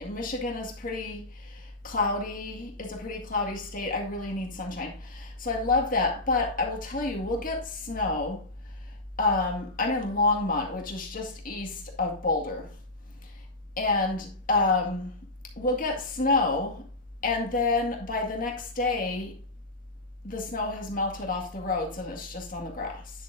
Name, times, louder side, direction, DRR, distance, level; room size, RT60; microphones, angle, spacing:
voice 1, 0.0-8.4 9.2-12.7 13.2-13.3 13.8-15.1 15.6-16.8 17.2-19.4 20.2-23.1, left 3 dB, 45° left, 2.0 m, -28 dB
10.0 x 7.1 x 2.7 m
head